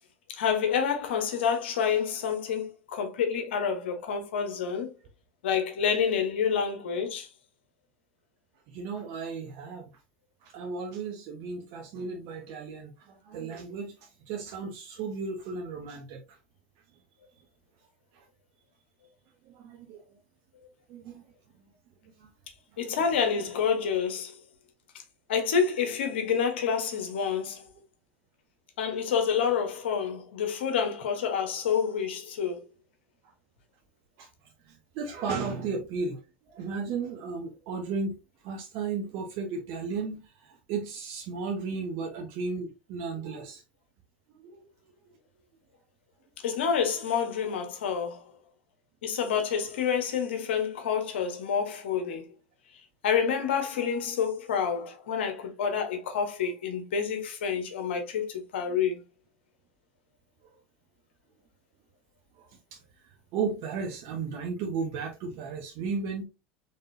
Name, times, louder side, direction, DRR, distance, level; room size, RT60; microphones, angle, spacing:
voice 1, 0.3-4.9 5.4-7.3 22.8-24.3 25.3-27.7 28.8-32.6 46.4-48.3 49.0-52.3 53.0-59.0, left 7 dB, 75° left, 1.1 m, -28 dB
voice 2, 8.7-9.9 10.4-16.4 18.1-18.2 19.5-20.2 20.9-21.2 22.2-22.3 22.7-23.0 28.9-29.0 34.2-34.3 34.6-36.2 36.5-38.2 38.4-43.6 44.4-44.7 62.4-66.2, right 5 dB, 55° right, 0.9 m, -35 dB
4.0 x 3.6 x 2.7 m
hypercardioid pair, 85°, 6 cm